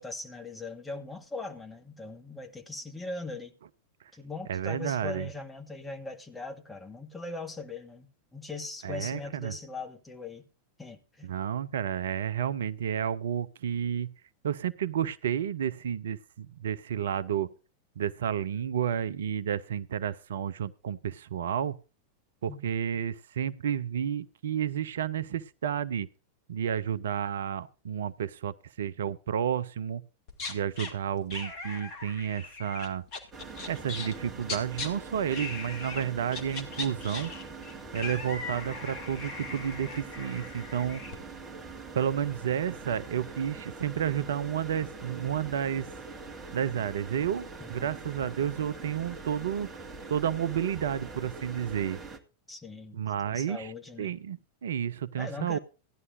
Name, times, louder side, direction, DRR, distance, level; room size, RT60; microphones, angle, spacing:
voice 1, 0.0-3.5 4.1-10.4 10.8-11.3 22.5-22.6 47.6-47.9 52.5-54.1 55.2-55.6, left 3 dB, 10° left, 1.6 m, -40 dB
voice 2, 4.5-5.3 8.8-9.6 11.2-14.1 14.4-17.5 18.0-21.8 22.4-26.1 26.5-30.0 30.5-33.1 33.7-37.3 37.9-41.0 41.9-45.9 46.5-49.7 50.1-52.0 52.9-53.7 54.0-55.6, right 9 dB, 60° right, 0.5 m, -31 dB
sound 1, 30.3-30.9 31.3-34.2 34.4-34.9 35.3-36.0 36.3-41.1, left 4 dB, 45° left, 2.4 m, -39 dB
sound 2, 33.3-52.2, right 3 dB, 20° right, 1.8 m, -43 dB
16.5 x 10.5 x 2.6 m
figure-of-eight pair, 90°, 0 cm